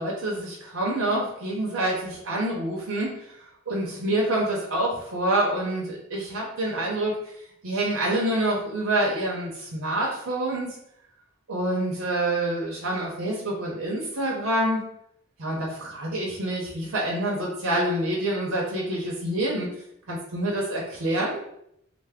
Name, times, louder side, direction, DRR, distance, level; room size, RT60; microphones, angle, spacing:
voice 1, 0.0-3.3 3.7-7.2 7.6-10.8 11.5-14.9 15.4-19.7 20.1-21.4, right 1 dB, 75° right, -3 dB, 0.6 m, -27 dB
3.2 x 2.0 x 3.5 m, 0.75 s
head